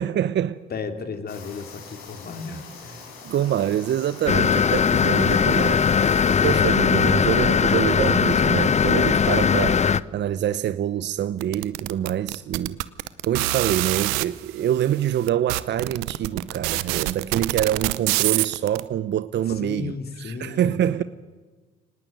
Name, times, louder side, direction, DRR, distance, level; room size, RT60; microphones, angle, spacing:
voice 1, 0.0-0.6 3.2-9.8 10.1-12.8 13.3-21.0, right 10 dB, 55° right, 0.9 m, -25 dB
voice 2, 0.7-3.0 19.6-21.0, left 5 dB, 50° left, 3.3 m, -34 dB
sound 1, 1.3-6.6, left 5 dB, 80° left, 5.5 m, -43 dB
sound 2, 4.3-10.0, left 6 dB, 35° left, 0.8 m, -19 dB
sound 3, 11.4-14.2 14.9-15.0 15.3-18.8, right 20 dB, 85° right, 0.8 m, -25 dB
24.0 x 19.0 x 9.4 m
hypercardioid pair, 60°, 21 cm